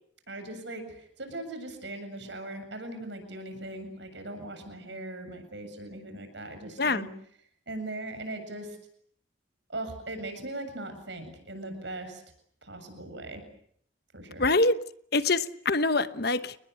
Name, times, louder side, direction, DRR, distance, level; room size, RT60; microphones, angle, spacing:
voice 1, 0.3-7.1 7.7-8.8 9.7-12.2 12.6-13.4 14.1-14.5, right 2 dB, 65° right, 7.6 m, -39 dB
voice 2, 14.4-14.8 15.1-16.6, left 2 dB, 50° left, 1.1 m, -25 dB
29.5 x 21.0 x 8.2 m
head